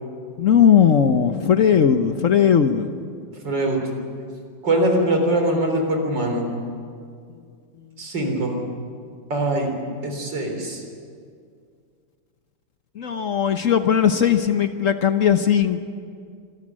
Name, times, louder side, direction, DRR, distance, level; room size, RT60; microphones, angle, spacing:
voice 1, 0.4-2.9 13.0-15.8, left 8 dB, 55° left, 8 dB, 1.0 m, -18 dB
voice 2, 3.4-3.8 4.6-6.5 8.0-8.6 9.3-10.8, right 1 dB, 70° right, 3 dB, 4.4 m, -22 dB
25.5 x 14.0 x 9.9 m, 2.2 s
omnidirectional pair, 2.1 m